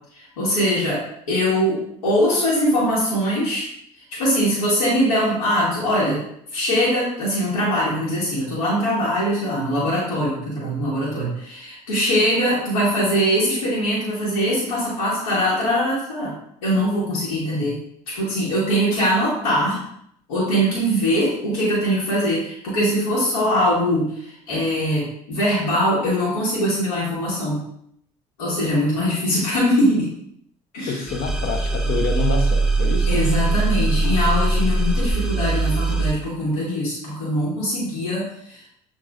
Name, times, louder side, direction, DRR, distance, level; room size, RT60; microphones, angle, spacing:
voice 1, 0.1-3.7 4.0-6.2 6.5-16.3 16.6-17.8 18.1-19.8 20.3-27.6 28.4-30.1 30.7-31.0 33.1-38.6, equal, 85° left, -7 dB, 1.2 m, -22 dB
voice 2, 30.9-33.2, left 4 dB, 55° left, 4 dB, 0.8 m, -27 dB
sound 1, 31.1-36.1, right 3 dB, 5° right, 0.6 m, -21 dB
6.9 x 2.4 x 2.4 m, 0.72 s
hypercardioid pair, 65°, 18 cm